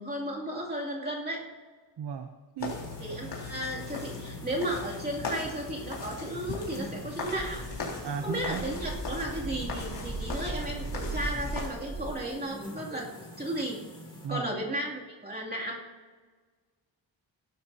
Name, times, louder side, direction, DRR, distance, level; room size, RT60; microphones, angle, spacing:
voice 1, 0.0-1.4 3.0-7.6 8.2-13.1 13.4-13.8 14.3-15.8, right 1 dB, 20° right, -4 dB, 2.6 m, -34 dB
voice 2, 2.0-2.3 2.6-2.7 8.0-8.7 14.2-14.5, right 7 dB, 60° right, 6 dB, 0.8 m, -34 dB
sound 1, 2.6-11.7, left 4 dB, 65° left, 3.7 m, -39 dB
sound 2, 2.7-14.3, left 1 dB, 10° left, 3.5 m, -47 dB
sound 3, 6.6-6.7 7.1-12.1, right 2 dB, 35° right, 4.3 m, -38 dB
17.5 x 12.0 x 2.8 m, 1.5 s
wide cardioid pair, 150°, 45 cm